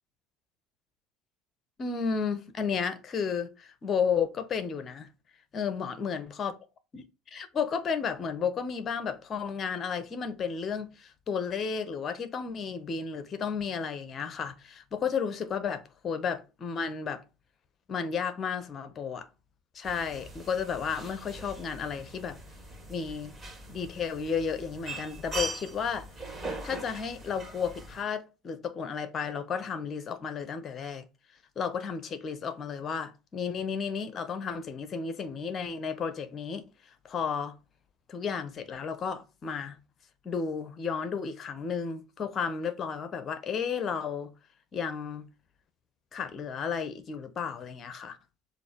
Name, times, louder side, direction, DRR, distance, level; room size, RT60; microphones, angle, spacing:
voice 1, 1.8-5.1 5.5-6.5 6.9-17.2 17.9-19.3 19.7-22.4 22.9-23.3 23.7-26.1 26.6-31.0 31.6-37.5 38.1-39.8 40.2-44.3 44.7-45.3 46.1-48.2, left 6 dB, 40° left, 1.2 m, -33 dB
sound 1, 19.8-28.0, right 2 dB, 20° right, 2.2 m, -41 dB
6.7 x 2.8 x 5.1 m
hypercardioid pair, 65°, 0 cm